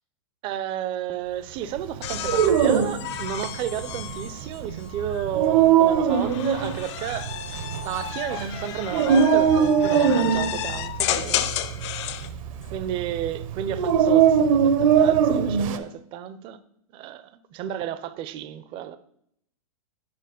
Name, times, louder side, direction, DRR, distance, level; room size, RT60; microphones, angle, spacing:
voice 1, 0.4-7.4 7.8-11.5 12.7-16.6 16.9-19.0, right 10 dB, 25° right, 0.4 m, -32 dB
sound 1, 2.0-5.3 6.1-12.3 13.8-14.3, left 12 dB, 50° left, 0.5 m, -32 dB
Dog, 2.0-15.8, right 7 dB, 65° right, 0.7 m, -21 dB
6.9 x 4.4 x 5.0 m
hypercardioid pair, 140°, 19 cm